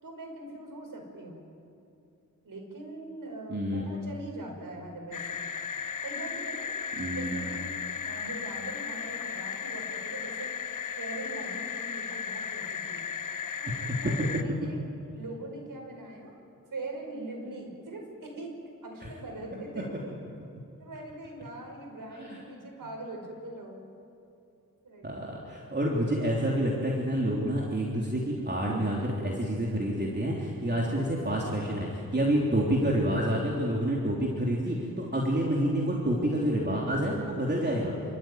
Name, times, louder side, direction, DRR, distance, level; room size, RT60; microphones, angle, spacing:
voice 1, 0.0-1.4 2.4-5.4 6.0-6.7 7.1-10.5 11.0-13.0 13.6-14.8 15.2-16.3 16.7-20.1 20.8-23.8 24.8-25.4, right 2 dB, 75° right, 1 dB, 5.8 m, -42 dB
voice 2, 3.5-3.8 6.9-7.5 13.7-14.0 22.3-22.4 25.0-37.9, right 1 dB, 30° right, -3 dB, 3.5 m, -28 dB
sound 1, 5.1-14.4, left 7 dB, 65° left, 0.9 m, -35 dB
28.5 x 14.0 x 9.3 m, 2.6 s
wide cardioid pair, 70°, 34 cm